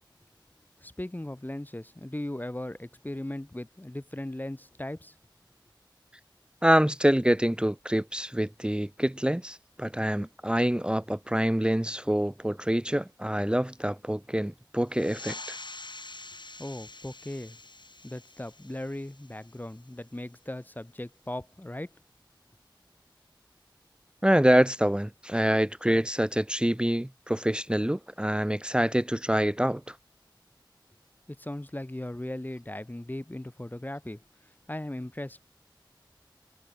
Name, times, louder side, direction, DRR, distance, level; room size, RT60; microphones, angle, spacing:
voice 1, 0.8-5.1 16.6-17.6 18.0-21.9 31.3-35.4, left 1 dB, 20° left, 1.1 m, -38 dB
voice 2, 6.6-15.6 24.2-30.0, equal, 10° right, 0.9 m, -26 dB
sound 1, 14.9-20.0, left 3 dB, 65° left, 2.3 m, -45 dB
wide cardioid pair, 55°, 8 cm